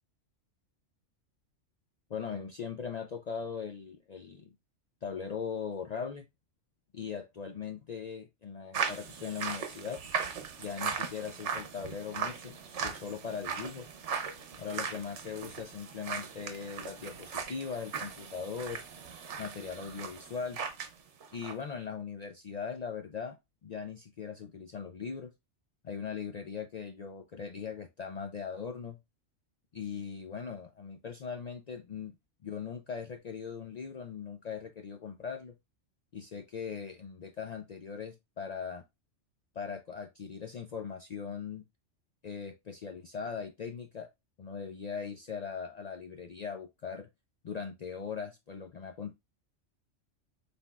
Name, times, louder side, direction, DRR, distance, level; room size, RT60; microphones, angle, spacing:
voice 1, 2.1-4.5 5.0-6.2 6.9-10.0 10.6-13.9 14.6-18.8 19.4-20.6 21.3-25.3 25.8-29.0 29.7-32.1 32.4-35.5 36.1-38.8 39.6-41.6 42.2-44.1 44.4-47.1 47.4-49.1, left 6 dB, 70° left, 0.4 m, -40 dB
sound 1, 8.7-20.9 21.2-21.5, right 6 dB, 70° right, 1.1 m, -38 dB
5.7 x 3.5 x 2.3 m
omnidirectional pair, 1.3 m